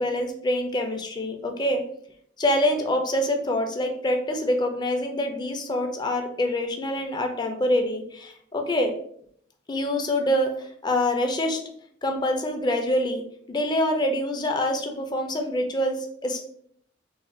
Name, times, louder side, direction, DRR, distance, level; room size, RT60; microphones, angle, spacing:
voice 1, 0.0-1.8 2.4-8.9 9.7-11.6 12.0-16.4, left 1 dB, 20° left, 4 dB, 0.3 m, -25 dB
2.5 x 2.2 x 3.6 m, 0.65 s
head